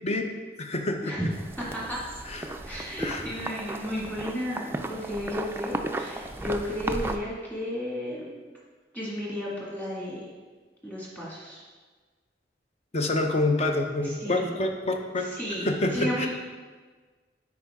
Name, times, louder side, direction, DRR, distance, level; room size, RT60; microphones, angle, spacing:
voice 1, 0.6-1.1 2.3-2.5 3.0-3.2 12.9-15.2 15.6-16.3, left 2 dB, 35° left, 4 dB, 0.7 m, -27 dB
sound 1, 1.3-7.2, right 2 dB, 15° right, 0.4 m, -35 dB
voice 2, 1.6-2.0 2.7-8.4 8.9-10.3 10.8-11.6 14.0-14.6 15.2-16.3, equal, 10° left, -6 dB, 2.0 m, -33 dB
9.3 x 4.8 x 3.6 m, 1.4 s
head